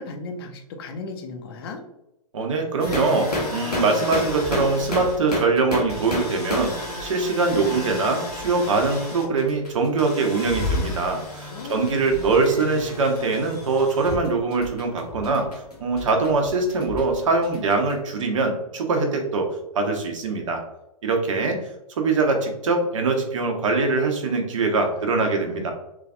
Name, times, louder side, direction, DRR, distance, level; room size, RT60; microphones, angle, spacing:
voice 1, 0.0-1.8 11.5-11.9 12.1-12.4 25.0-25.7, left 3 dB, 40° left, 4 dB, 0.5 m, -37 dB
voice 2, 2.3-6.7 7.0-15.5 15.8-20.6 21.0-21.6 22.0-25.7, right 3 dB, 55° right, 4 dB, 0.6 m, -23 dB
sound 1, 2.8-17.9, left 1 dB, 90° left, 0.9 m, -31 dB
3.1 x 2.4 x 2.3 m, 0.88 s
figure-of-eight pair, 110°, 19 cm